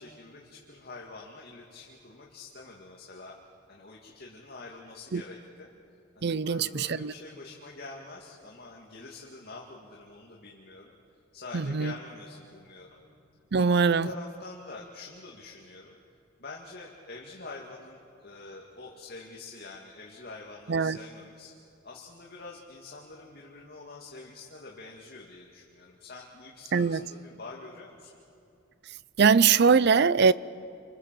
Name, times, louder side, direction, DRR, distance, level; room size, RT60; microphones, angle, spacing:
voice 1, 0.0-3.4 3.7-5.7 6.2-11.0 11.3-13.0 13.5-16.0 16.4-21.5 21.8-28.2, left 3 dB, 55° left, 2.3 m, -46 dB
voice 2, 6.2-7.1 11.5-11.9 13.5-14.1 20.7-21.0 26.7-27.1 29.2-30.3, right 5 dB, 55° right, 0.5 m, -22 dB
29.5 x 25.5 x 7.6 m
head